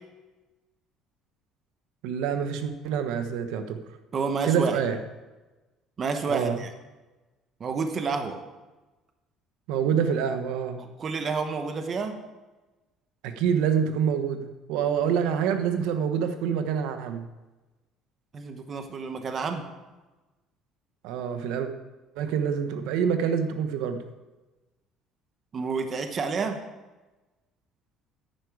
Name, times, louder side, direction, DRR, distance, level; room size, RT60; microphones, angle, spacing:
voice 1, 2.0-3.8 4.4-5.0 6.3-6.6 9.7-10.8 13.2-17.3 21.0-21.7 22.2-24.0, right 7 dB, 80° right, 8 dB, 1.0 m, -26 dB
voice 2, 4.1-4.8 6.0-6.7 7.6-8.4 10.8-12.2 18.3-19.6 25.5-26.6, right 4 dB, 30° right, 7 dB, 0.9 m, -29 dB
10.5 x 9.7 x 4.8 m, 1.1 s
cardioid pair, 160°, 0 cm